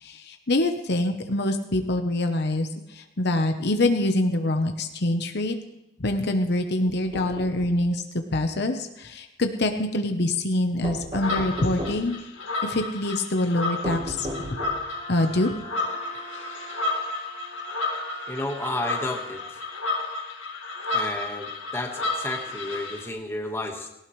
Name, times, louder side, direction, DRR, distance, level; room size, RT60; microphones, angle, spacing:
voice 1, 0.0-5.6 6.0-8.0 8.3-12.2 12.6-14.3 15.1-15.5, left 1 dB, 55° left, 5 dB, 1.0 m, -25 dB
Knocking on Window, 6.9-7.9 10.8-12.2 13.8-15.0, equal, 25° right, 1.4 m, -35 dB
sound 1, 11.1-23.1, left 2 dB, 75° left, 2.0 m, -32 dB
Wind instrument woodwind instrument, 14.9-19.4, right 2 dB, 60° right, 3.6 m, -44 dB
voice 2, 18.3-19.4 20.9-23.9, left 1 dB, 15° left, 2 dB, 1.5 m, -32 dB
18.5 x 18.0 x 3.2 m, 0.90 s
head